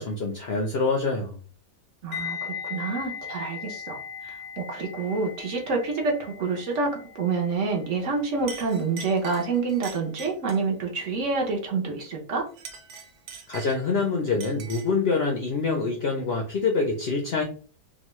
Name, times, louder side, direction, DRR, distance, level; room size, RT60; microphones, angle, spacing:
voice 1, 0.0-1.4 13.5-17.4, left 4 dB, 65° left, 1 dB, 0.6 m, -25 dB
voice 2, 2.0-12.5, right 4 dB, 60° right, 0 dB, 1.0 m, -28 dB
sound 1, 2.1-11.1 11.3-11.6, left 8 dB, 90° left, 1.1 m, -40 dB
Chink clink, 8.0-8.2 8.5-10.7 12.5-14.0 14.4-15.0, right 5 dB, 85° right, 1.2 m, -43 dB
3.0 x 2.3 x 3.0 m, 0.41 s
omnidirectional pair, 1.6 m